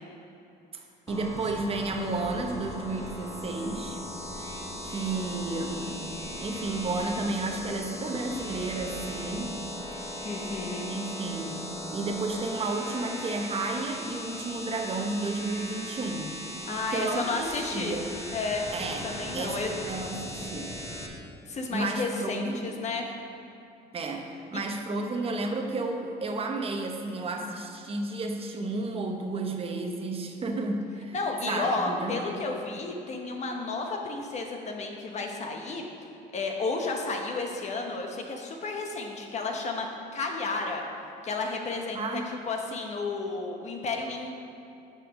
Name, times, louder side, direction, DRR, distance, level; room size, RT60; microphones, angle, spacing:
voice 1, 0.7-4.0 4.4-4.6 4.8-6.0 6.4-9.5 10.9-16.3 16.9-18.1 18.7-19.0 19.3-19.6 19.9-20.7 21.7-22.6 23.9-31.1 31.5-32.2 41.9-42.4, right 2 dB, 35° right, 2 dB, 1.0 m, -32 dB
sound 1, 1.1-21.1, left 1 dB, 15° left, 1.1 m, -38 dB
voice 2, 10.2-10.9 16.7-18.0 18.3-18.7 19.0-19.7 21.5-23.1 31.1-35.9 36.3-39.9 40.1-40.8 41.2-44.3, left 3 dB, 40° left, 2 dB, 1.1 m, -32 dB
7.2 x 5.7 x 5.2 m, 2.9 s
cardioid pair, 110°, 17 cm